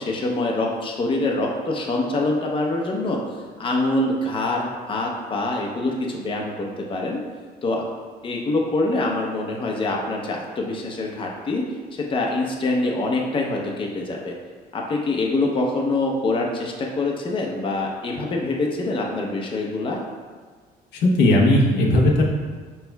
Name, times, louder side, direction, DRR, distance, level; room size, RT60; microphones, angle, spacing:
voice 1, 0.0-3.2 3.6-7.2 7.6-7.8 8.2-11.6 11.9-14.3 14.7-20.0, left 2 dB, 30° left, -1 dB, 0.7 m, -25 dB
voice 2, 20.9-22.2, left 1 dB, 80° left, -1 dB, 0.8 m, -17 dB
5.3 x 4.4 x 2.2 m, 1.5 s
cardioid pair, 110°, 17 cm